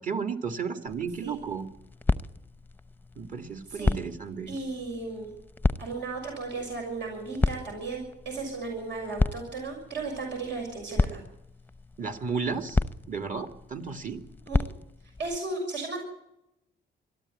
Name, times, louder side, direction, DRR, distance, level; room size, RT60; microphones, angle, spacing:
voice 1, 0.0-1.7 3.2-4.6 12.0-12.8 13.1-14.2, right 5 dB, 40° right, 7 dB, 2.4 m, -33 dB
sound 1, 0.9-15.4, left 3 dB, 10° left, 0.8 m, -33 dB
voice 2, 4.5-5.3 5.8-11.2 14.5-14.6 15.2-16.0, right 3 dB, 70° right, 1 dB, 6.4 m, -35 dB
22.5 x 13.5 x 8.5 m, 0.86 s
cardioid pair, 90°, 20 cm